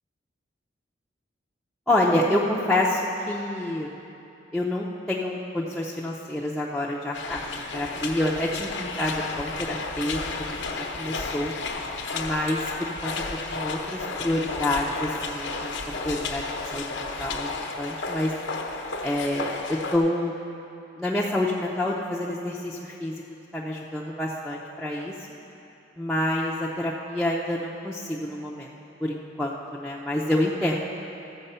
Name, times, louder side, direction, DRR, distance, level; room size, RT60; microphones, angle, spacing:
voice 1, 1.9-3.0 3.3-3.9 4.5-10.6 11.0-11.5 12.1-13.1 13.5-15.7 16.0-17.5 17.8-18.3 19.0-20.3 21.0-23.2 23.5-25.1 26.0-28.7 29.0-30.7, left 1 dB, ahead, -8 dB, 0.6 m, -27 dB
sound 1, 7.1-20.0, left 3 dB, 80° left, 0.9 m, -33 dB
13.5 x 7.5 x 5.6 m, 2.8 s
head